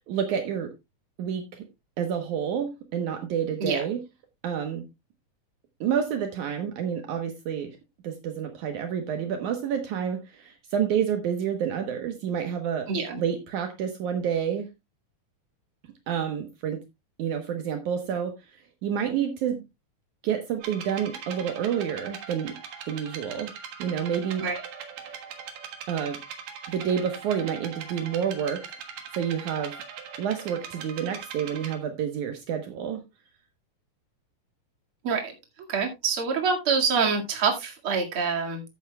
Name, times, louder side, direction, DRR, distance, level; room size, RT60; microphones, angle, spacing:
voice 1, 0.1-0.7 1.2-1.7 2.0-4.0 4.4-4.9 5.8-7.8 8.0-14.7 16.1-16.8 17.2-19.6 20.2-22.6 22.9-23.5 23.8-24.5 25.0-25.2 25.9-26.2 26.7-28.8 29.1-29.8 30.2-33.0, right 8 dB, 70° right, 5 dB, 2.5 m, -29 dB
voice 2, 12.9-13.2 24.4-24.6 35.0-35.3 35.7-38.6, right 5 dB, 45° right, 2 dB, 2.6 m, -26 dB
sound 1, 20.6-31.8, right 7 dB, 90° right, 3.2 m, -41 dB
13.5 x 9.2 x 2.3 m, 0.22 s
omnidirectional pair, 3.8 m